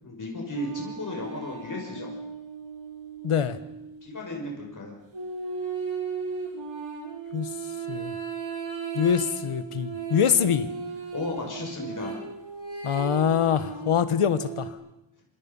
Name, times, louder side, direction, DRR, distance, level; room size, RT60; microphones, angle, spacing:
voice 1, 0.0-2.1 4.0-5.0 11.1-12.1, left 1 dB, 40° left, 0 dB, 6.2 m, -34 dB
sound 1, 0.5-4.1 5.1-14.7, right 5 dB, 65° right, 6.9 m, -36 dB
voice 2, 3.2-3.6 7.3-7.5 7.9-8.1 8.9-10.7 12.8-14.8, left 8 dB, 85° left, 12 dB, 1.5 m, -24 dB
27.0 x 26.0 x 5.6 m, 0.88 s
wide cardioid pair, 145°, 50 cm